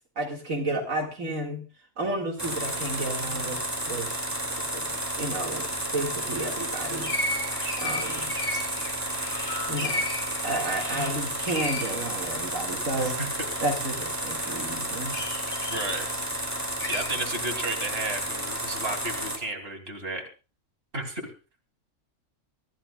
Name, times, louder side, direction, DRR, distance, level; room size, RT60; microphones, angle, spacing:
voice 1, 0.2-1.6 2.0-3.6 3.9-4.1 4.7-7.1 7.8-8.3 9.7-10.1 10.4-13.1 13.6-15.2, right 2 dB, 75° right, 1 dB, 2.4 m, -31 dB
sound 1, 2.4-19.4, right 1 dB, 10° right, 2.5 m, -32 dB
sound 2, 5.0-5.1 5.3-13.2 13.6-13.8 14.3-14.6 15.1-17.0, left 2 dB, 25° left, 3.9 m, -35 dB
voice 2, 13.0-13.3 15.7-16.1 16.9-20.2 20.9-21.3, right 2 dB, 45° right, 3 dB, 3.2 m, -33 dB
24.5 x 14.5 x 2.4 m, 0.31 s
omnidirectional pair, 1.4 m